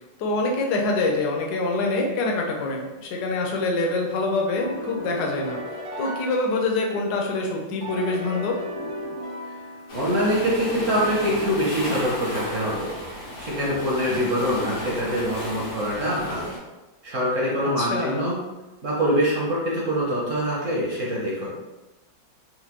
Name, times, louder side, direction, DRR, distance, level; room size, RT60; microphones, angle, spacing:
voice 1, 0.2-5.6 6.0-8.6 17.8-18.3, left 2 dB, 65° left, 0 dB, 1.1 m, -25 dB
sound 1, 4.6-7.2 7.8-10.3, equal, 90° right, 1.6 m, -35 dB
Waves surf, 9.9-16.6, equal, 90° left, 1.8 m, -33 dB
voice 2, 9.9-12.9 13.4-16.5 17.0-18.4 18.8-21.6, equal, 60° right, -4 dB, 0.8 m, -24 dB
4.4 x 2.2 x 2.9 m, 1.1 s
omnidirectional pair, 2.0 m